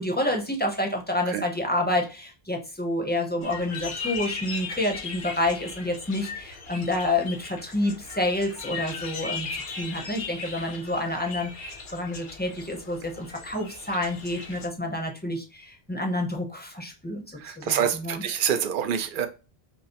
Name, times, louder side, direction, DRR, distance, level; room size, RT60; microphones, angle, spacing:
voice 1, 0.0-18.2, left 1 dB, 10° left, 1 dB, 0.7 m, -29 dB
sound 1, 3.4-14.7, left 4 dB, 55° left, 0.8 m, -38 dB
voice 2, 17.4-19.3, right 8 dB, 60° right, 8 dB, 0.7 m, -26 dB
5.5 x 2.0 x 2.9 m, 0.31 s
omnidirectional pair, 1.0 m